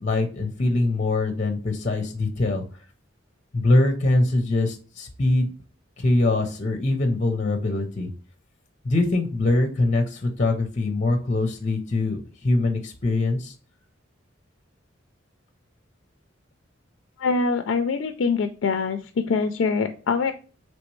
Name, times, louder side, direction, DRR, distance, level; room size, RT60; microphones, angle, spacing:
voice 1, 0.0-2.6 3.5-5.5 6.0-8.1 8.8-13.5, left 2 dB, 35° left, 5 dB, 0.7 m, -23 dB
voice 2, 17.2-19.0 19.3-20.3, left 4 dB, 70° left, 8 dB, 0.4 m, -24 dB
4.1 x 3.2 x 3.1 m, 0.37 s
head